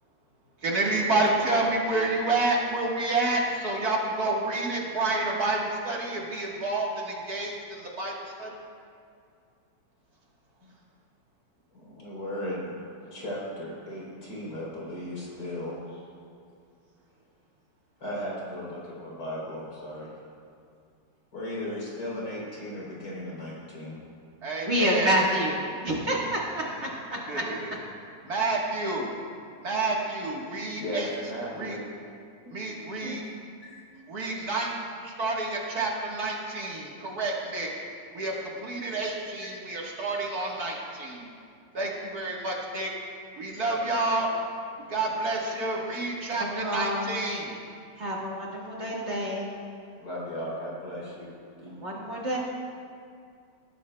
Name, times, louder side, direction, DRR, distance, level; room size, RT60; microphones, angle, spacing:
voice 1, 0.6-8.6 24.4-25.1 26.6-26.8 27.3-27.7 28.2-29.1 29.6-31.1 31.5-31.8 32.5-33.2 34.1-34.7 35.0-37.7 38.1-41.3 41.7-42.9 43.4-44.3 44.9-47.5 51.7-52.0, right 2 dB, 55° right, -2 dB, 1.9 m, -29 dB
voice 2, 11.7-12.7 13.1-16.0 18.0-20.1 21.3-24.0 30.8-31.8 32.4-32.5 33.0-33.1 33.6-33.8 34.2-34.4 39.4-39.5 50.0-51.3 51.6-51.7, equal, 65° left, -6 dB, 4.0 m, -36 dB
voice 3, 24.7-27.4 46.5-47.1 48.0-49.5 51.8-52.4, equal, 40° right, -4 dB, 1.8 m, -28 dB
19.0 x 12.0 x 2.2 m, 2.4 s
omnidirectional pair, 1.9 m